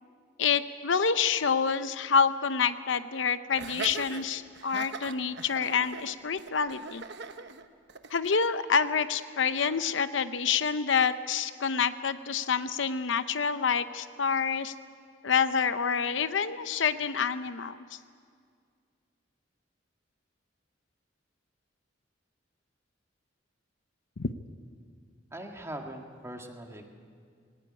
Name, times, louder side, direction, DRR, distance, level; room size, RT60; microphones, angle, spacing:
voice 1, 0.4-7.0 8.1-14.7 15.2-18.0 24.2-24.3, left 6 dB, 70° left, 12 dB, 0.8 m, -27 dB
Laughter, 3.5-8.5, right 5 dB, 65° right, 1.0 m, -41 dB
voice 2, 25.3-26.9, right 1 dB, 15° right, 3 dB, 1.9 m, -41 dB
20.5 x 18.0 x 9.9 m, 2.1 s
head